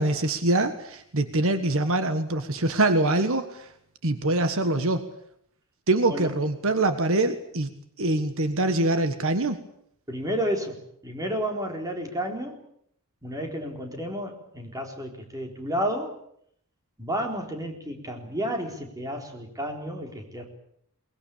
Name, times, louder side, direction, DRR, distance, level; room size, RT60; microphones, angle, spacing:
voice 1, 0.0-3.7 4.0-5.0 5.9-7.7 8.0-9.6, right 2 dB, 65° right, 9 dB, 1.6 m, -24 dB
voice 2, 10.1-12.6 13.2-16.2 17.0-20.4, equal, 15° right, 2 dB, 4.1 m, -31 dB
22.5 x 20.5 x 8.6 m, 0.69 s
head